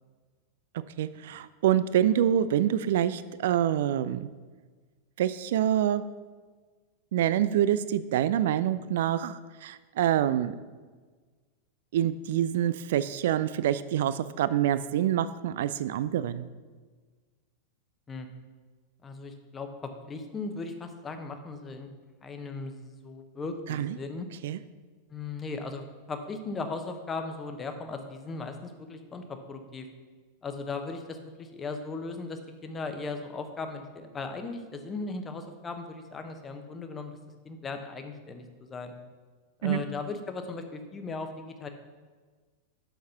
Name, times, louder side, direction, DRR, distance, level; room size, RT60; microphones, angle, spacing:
voice 1, 1.0-4.3 5.2-6.0 7.1-10.5 11.9-16.5 23.7-24.0 24.4-24.6 39.6-39.8, right 11 dB, 55° right, 15 dB, 0.3 m, -26 dB
voice 2, 19.0-21.9 22.2-24.3 25.1-29.9 30.4-37.2 37.4-38.9 39.6-41.7, left 3 dB, 20° left, 6 dB, 0.9 m, -37 dB
8.0 x 6.4 x 5.8 m, 1.4 s
figure-of-eight pair, 90°, 0 cm